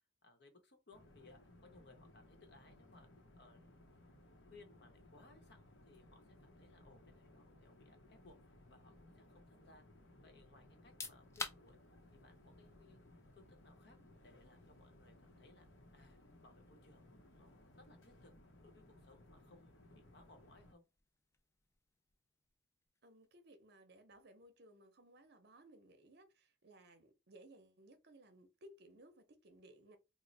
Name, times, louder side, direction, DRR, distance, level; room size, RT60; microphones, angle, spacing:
voice 1, 0.2-3.7 4.4-9.8 10.2-11.8 12.1-13.1 13.3-15.7 15.9-17.1 17.3-18.3 18.6-20.8, left 2 dB, 60° left, 0.8 m, -64 dB
sound 1, 0.9-20.7, left 1 dB, 85° left, 0.7 m, -62 dB
sound 2, 10.8-23.4, left 3 dB, 15° left, 0.3 m, -55 dB
voice 2, 23.0-30.0, right 1 dB, 55° right, 0.7 m, -61 dB
3.0 x 2.0 x 3.9 m
head